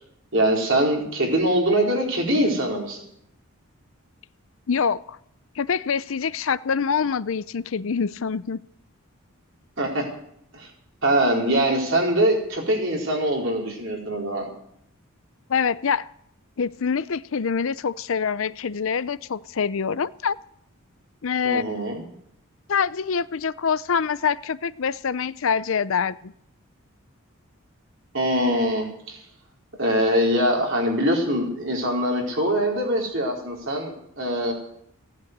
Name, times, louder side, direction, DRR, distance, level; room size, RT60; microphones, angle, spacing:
voice 1, 0.3-3.0 9.8-10.1 10.5-10.7 11.0-14.5 21.4-22.0 28.1-29.2 29.8-34.5, right 1 dB, 60° right, -1 dB, 4.3 m, -23 dB
voice 2, 4.7-5.2 5.6-8.6 15.5-16.1 16.6-20.4 21.2-21.6 22.7-26.3, left 6 dB, 65° left, 17 dB, 0.5 m, -25 dB
16.5 x 10.5 x 8.1 m, 0.72 s
head